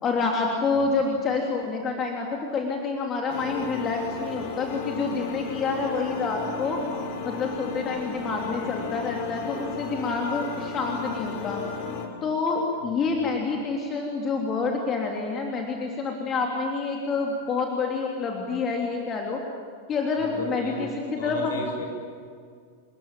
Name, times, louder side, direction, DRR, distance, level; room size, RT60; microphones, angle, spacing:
voice 1, 0.0-6.8 7.2-11.6 12.2-19.4 19.9-21.6, left 4 dB, 25° left, 1 dB, 3.3 m, -28 dB
sound 1, 3.3-12.1, left 5 dB, 45° left, 3.4 m, -34 dB
voice 2, 12.8-13.2 20.2-20.9 21.2-21.9, left 1 dB, 60° left, 1 dB, 7.7 m, -36 dB
27.5 x 20.5 x 9.2 m, 2.1 s
figure-of-eight pair, 90°, 0 cm